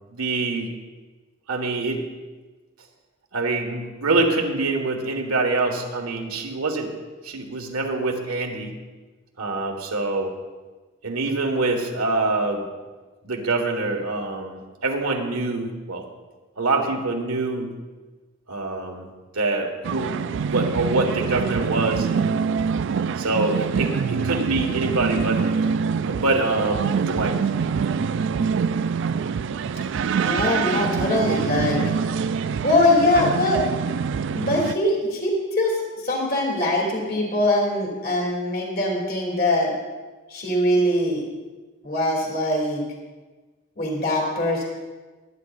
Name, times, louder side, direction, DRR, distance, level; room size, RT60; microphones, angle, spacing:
voice 1, 0.1-0.7 1.5-2.1 3.3-6.9 7.2-8.7 9.4-10.4 11.0-12.7 13.2-16.0 16.6-17.7 18.5-19.1 19.3-22.3 23.2-25.6 26.0-27.3, right 2 dB, 85° right, 2 dB, 1.7 m, -25 dB
sound 1, 19.8-34.7, right 6 dB, 55° right, 0.3 m, -25 dB
voice 2, 30.2-31.8 32.6-33.6 34.3-39.7 40.3-41.2 41.8-42.8 43.8-44.6, left 1 dB, 45° left, -2 dB, 2.8 m, -22 dB
22.5 x 9.8 x 2.5 m, 1.3 s
head